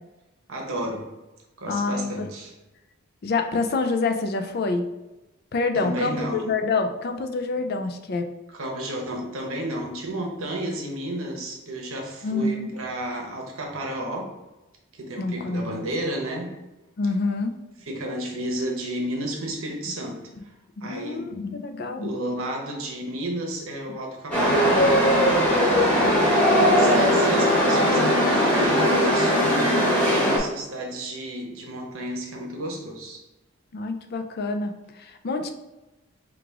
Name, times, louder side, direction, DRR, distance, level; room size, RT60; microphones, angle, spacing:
voice 1, 0.5-1.1 1.6-2.5 5.7-6.5 8.5-14.3 14.9-16.5 17.8-20.5 20.8-21.4 22.0-24.9 26.3-33.2, right 1 dB, 80° right, 1 dB, 0.9 m, -32 dB
voice 2, 1.7-2.3 3.2-4.8 5.5-8.3 12.2-12.7 15.2-15.8 17.0-17.6 20.8-22.1 33.7-35.5, left 3 dB, 50° left, 6 dB, 0.4 m, -27 dB
Chatter / Subway metro underground, 24.3-30.4, equal, 5° left, 1.2 m, -19 dB
4.8 x 2.4 x 3.5 m, 1.0 s
head